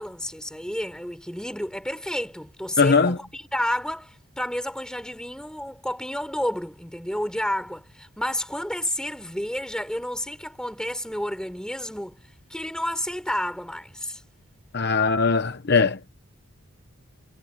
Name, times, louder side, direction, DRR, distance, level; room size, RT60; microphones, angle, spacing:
voice 1, 0.0-12.2 12.5-14.2, left 1 dB, 5° left, 4.6 m, -30 dB
voice 2, 2.8-3.2 14.7-16.0, left 4 dB, 45° left, 0.8 m, -20 dB
head